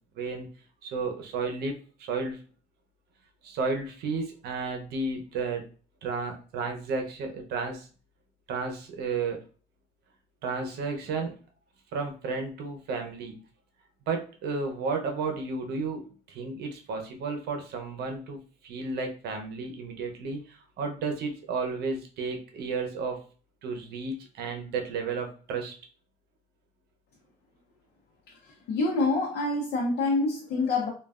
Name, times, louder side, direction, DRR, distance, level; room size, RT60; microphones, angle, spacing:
voice 1, 0.1-0.5 0.8-2.4 3.4-5.6 6.0-7.9 8.5-9.4 10.4-11.3 11.9-13.4 14.1-23.2 23.6-25.7, right 4 dB, 70° right, 3 dB, 0.7 m, -32 dB
voice 2, 28.3-30.9, left 3 dB, 70° left, -2 dB, 0.7 m, -27 dB
3.2 x 2.3 x 2.4 m, 0.39 s
cardioid pair, 110°, 17 cm